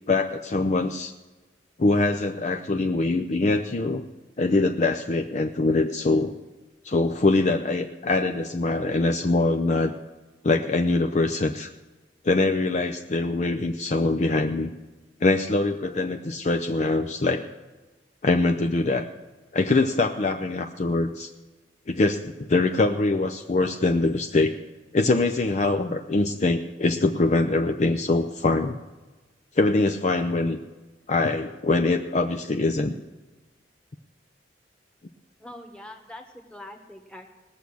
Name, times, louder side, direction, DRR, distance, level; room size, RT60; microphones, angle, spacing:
voice 1, 0.1-1.1 1.8-4.0 4.4-6.3 6.8-9.9 10.4-11.7 12.2-14.7 15.2-17.4 18.2-19.0 19.5-21.3 21.9-24.5 24.9-28.8 29.6-30.6 31.1-32.9, left 2 dB, 40° left, 5 dB, 0.6 m, -23 dB
voice 2, 35.4-37.3, left 1 dB, 5° left, 3 dB, 1.3 m, -43 dB
19.0 x 6.9 x 6.2 m, 1.2 s
head